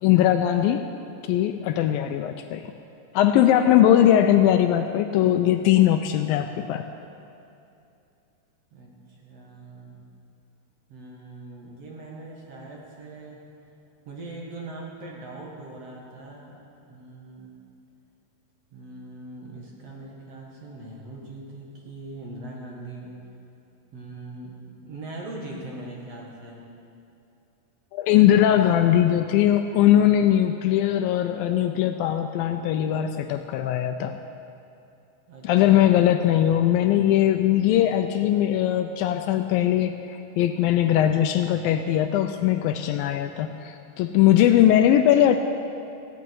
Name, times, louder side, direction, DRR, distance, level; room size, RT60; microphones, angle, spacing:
voice 1, 0.0-0.8 1.3-2.7 3.1-6.8 27.9-34.2 35.4-45.4, left 11 dB, 80° left, 7 dB, 2.2 m, -20 dB
voice 2, 8.7-10.0 10.9-13.4 14.1-17.5 18.7-23.2 23.9-26.6 28.5-28.9 35.3-36.0, right 2 dB, 50° right, -2 dB, 2.4 m, -41 dB
18.0 x 15.0 x 4.6 m, 2.7 s
omnidirectional pair, 4.4 m